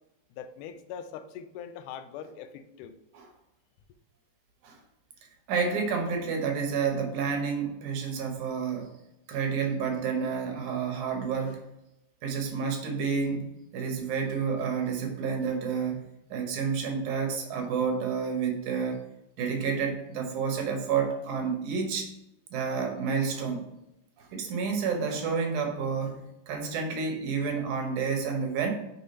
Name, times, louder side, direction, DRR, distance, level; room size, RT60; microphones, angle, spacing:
voice 1, 0.3-3.0, left 8 dB, 85° left, 9 dB, 2.0 m, -42 dB
voice 2, 5.5-8.9 9.3-11.6 12.2-13.5 13.7-16.0 16.3-19.0 19.4-22.1 22.5-23.7 24.2-26.2 26.5-28.7, right 5 dB, 75° right, 3 dB, 2.4 m, -29 dB
6.7 x 3.5 x 4.1 m, 0.89 s
omnidirectional pair, 3.6 m